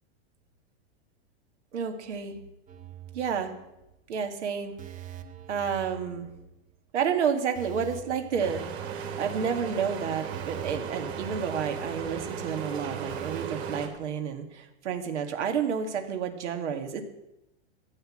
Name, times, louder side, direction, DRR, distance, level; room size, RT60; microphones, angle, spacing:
voice 1, 1.7-2.4 3.1-3.5 4.1-5.0 5.5-6.3 6.9-8.6 9.2-17.0, right 7 dB, 90° right, 5 dB, 2.1 m, -30 dB
sound 1, 2.7-3.9 4.2-4.4 4.8-6.7 7.0-7.1 7.6-9.5 9.8-9.9 10.3-12.3 12.5-12.6 13.1-13.5, right 11 dB, 25° right, 1.0 m, -45 dB
sound 2, 8.4-13.9, right 7 dB, 65° right, 3.2 m, -36 dB
14.0 x 8.4 x 7.5 m, 0.88 s
supercardioid pair, 135°, 34 cm